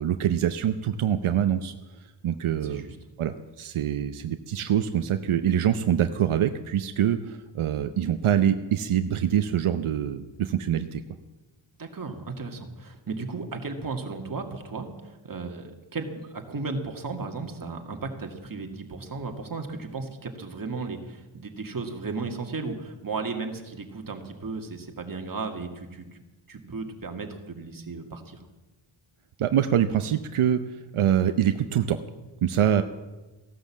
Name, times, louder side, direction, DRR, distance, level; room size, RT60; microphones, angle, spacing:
voice 1, 0.0-1.7 2.2-2.9 3.2-11.0 29.4-30.6 30.9-32.0 32.4-32.8, right 9 dB, 85° right, 9 dB, 0.8 m, -24 dB
voice 2, 2.6-3.0 11.8-26.1 26.5-28.4, right 4 dB, 45° right, 4 dB, 2.1 m, -35 dB
16.0 x 12.0 x 7.4 m, 1.1 s
wide cardioid pair, 95°, 48 cm